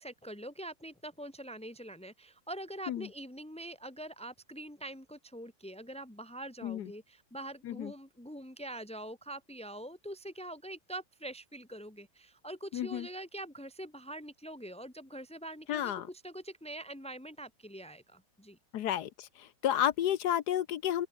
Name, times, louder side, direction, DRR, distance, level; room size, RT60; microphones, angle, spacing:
voice 1, 0.0-18.6, right 1 dB, 5° left, 2.9 m, -44 dB
voice 2, 12.7-13.1 15.7-16.1 18.7-21.1, left 11 dB, 70° left, 1.3 m, -31 dB
open air
omnidirectional pair, 1.9 m